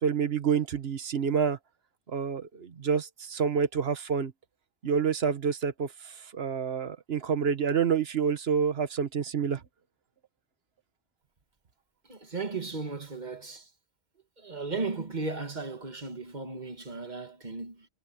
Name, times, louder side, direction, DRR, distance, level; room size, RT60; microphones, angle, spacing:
voice 1, 0.0-1.6 2.1-4.3 4.8-9.6, right 6 dB, 70° right, 1.5 m, -28 dB
voice 2, 12.1-13.7 14.4-17.9, right 3 dB, 45° right, 1.8 m, -36 dB
omnidirectional pair, 1.1 m